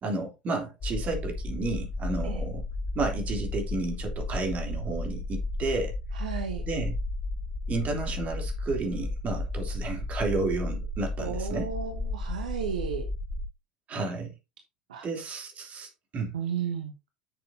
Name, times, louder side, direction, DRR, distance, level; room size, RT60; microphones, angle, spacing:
voice 1, 0.0-2.6 2.9-5.9 6.7-7.0 7.7-11.7 13.9-14.3 15.0-16.3, right 3 dB, 35° right, 3.3 m, -32 dB
sound 1, 0.8-13.5, left 2 dB, 35° left, 1.6 m, -33 dB
voice 2, 6.1-6.6 11.2-13.0 14.9-15.0 16.3-16.9, right 7 dB, 70° right, 1.2 m, -33 dB
10.5 x 6.8 x 2.8 m
figure-of-eight pair, 75°, 5 cm